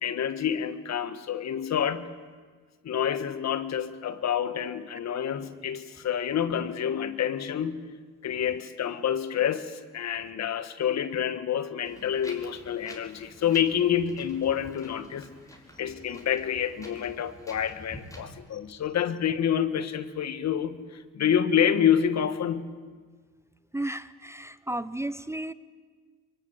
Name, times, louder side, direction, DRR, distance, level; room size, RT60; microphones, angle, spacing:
voice 1, 0.0-2.1 2.8-7.8 8.2-15.3 15.8-22.7, left 9 dB, 60° left, 12 dB, 1.7 m, -28 dB
Wind, 11.9-18.3, equal, 10° left, 4.9 m, -49 dB
voice 2, 23.7-25.5, right 1 dB, 10° right, 15 dB, 0.7 m, -33 dB
22.5 x 22.5 x 9.7 m, 1.5 s
cardioid pair, 90°, 30 cm